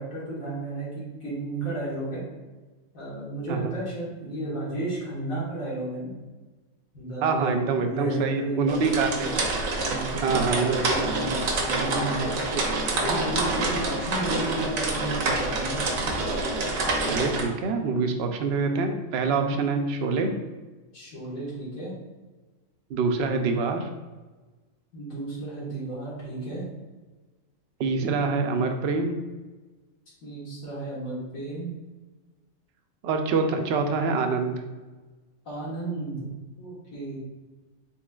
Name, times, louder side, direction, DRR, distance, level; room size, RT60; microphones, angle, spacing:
voice 1, 0.0-2.2 2.9-6.1 6.9-9.3 9.8-12.3 12.9-15.9 19.3-19.6 20.9-21.9 24.9-26.6 30.2-31.7 35.5-36.3 36.6-37.2, right 2 dB, 90° left, -7 dB, 1.9 m, -33 dB
voice 2, 7.2-9.3 10.2-11.0 11.2-11.3 12.5-12.6 17.1-20.3 22.9-23.9 27.8-29.2 33.0-34.6, right 4 dB, 65° right, 5 dB, 0.7 m, -25 dB
sound 1, 8.7-17.4, right 2 dB, 85° right, 1.2 m, -27 dB
4.6 x 3.9 x 2.3 m, 1.2 s
omnidirectional pair, 1.4 m